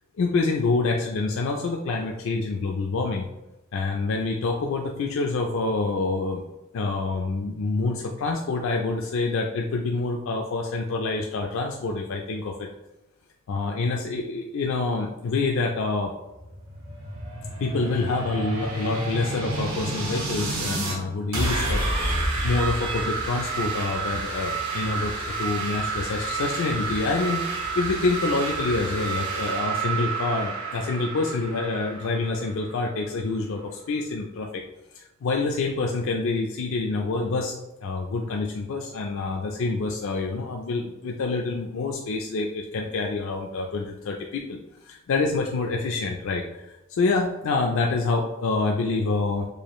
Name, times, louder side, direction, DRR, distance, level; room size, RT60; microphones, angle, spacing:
voice 1, 0.2-3.3 3.7-6.4 6.7-12.7 13.5-16.1 17.6-21.8 22.1-34.6 34.9-49.5, left 3 dB, 65° left, 1 dB, 0.4 m, -27 dB
sound 1, 16.3-21.0 21.3-32.9, right 3 dB, 75° right, 1.3 m, -29 dB
4.8 x 2.4 x 3.0 m, 1.0 s
head